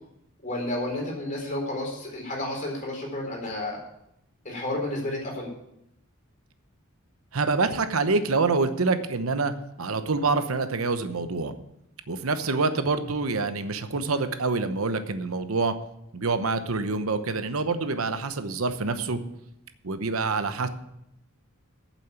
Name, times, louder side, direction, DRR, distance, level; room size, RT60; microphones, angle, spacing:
voice 1, 0.4-3.8 4.4-5.5, left 1 dB, 40° left, -1 dB, 4.2 m, -31 dB
voice 2, 7.3-9.5 9.8-11.5 12.1-15.7 16.1-19.2 19.8-20.7, right 3 dB, 80° right, 10 dB, 0.9 m, -26 dB
8.8 x 7.5 x 8.2 m, 0.80 s
head